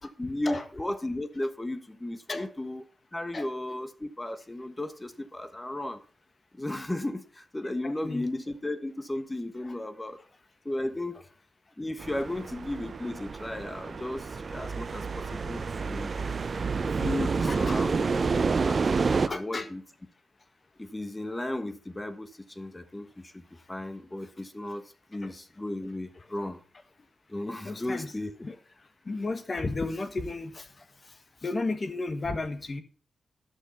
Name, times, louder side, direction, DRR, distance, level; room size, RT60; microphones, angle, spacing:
voice 1, 0.2-2.8 3.1-6.0 6.5-10.2 10.6-11.2 11.8-16.1 16.8-19.8 20.8-24.8 25.1-26.6 27.3-28.5, left 1 dB, 15° left, 11 dB, 1.2 m, -35 dB
voice 2, 7.8-8.3 17.5-17.8 18.3-18.4 19.3-19.7 25.2-25.3 27.6-28.1 28.4-28.5 29.1-30.6 31.4-32.8, left 3 dB, 35° left, 10 dB, 1.4 m, -33 dB
sound 1, 12.0-19.3, right 4 dB, 45° right, 0.7 m, -29 dB
11.5 x 6.4 x 5.7 m, 0.39 s
wide cardioid pair, 100°, 0 cm